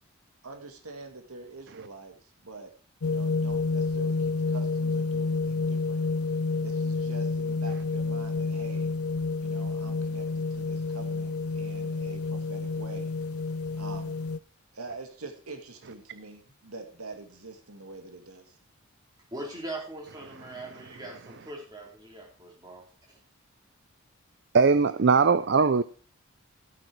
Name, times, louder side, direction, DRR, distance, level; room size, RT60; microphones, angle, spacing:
voice 1, 0.4-2.7 3.0-6.1 6.6-8.9 9.4-13.1 13.7-14.2 14.7-18.6, right 3 dB, 80° right, 2.2 m, -45 dB
sound 1, 3.0-14.4, left 4 dB, 80° left, 0.6 m, -29 dB
voice 2, 19.3-22.9, right 1 dB, 20° right, 4.1 m, -41 dB
voice 3, 24.5-25.8, right 5 dB, 50° right, 0.5 m, -20 dB
15.0 x 8.9 x 4.7 m
head